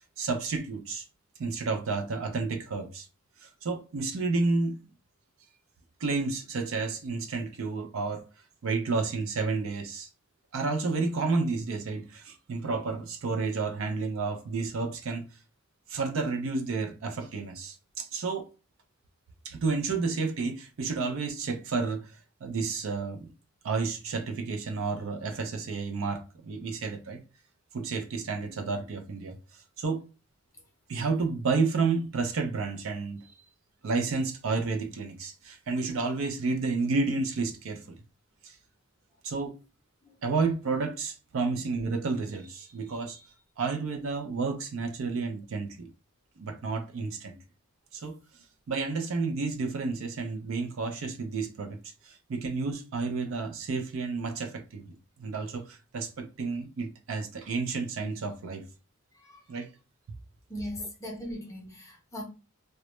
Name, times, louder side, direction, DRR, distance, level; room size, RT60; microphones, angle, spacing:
voice 1, 0.2-1.1 1.4-3.1 3.4-4.8 6.0-8.2 8.6-10.1 10.5-15.2 15.9-18.5 19.4-22.1 22.4-23.3 23.6-27.2 27.7-29.4 29.8-30.0 30.9-33.3 33.8-38.0 38.4-38.6 39.2-39.5 40.2-43.2 43.6-45.9 46.4-47.4 47.9-48.2 48.7-51.8 52.0-58.6 59.5-59.7 60.8-60.9, right 4 dB, 70° right, 0.4 m, -31 dB
voice 2, 60.5-62.2, equal, 15° left, 0.5 m, -38 dB
2.1 x 2.0 x 2.9 m
head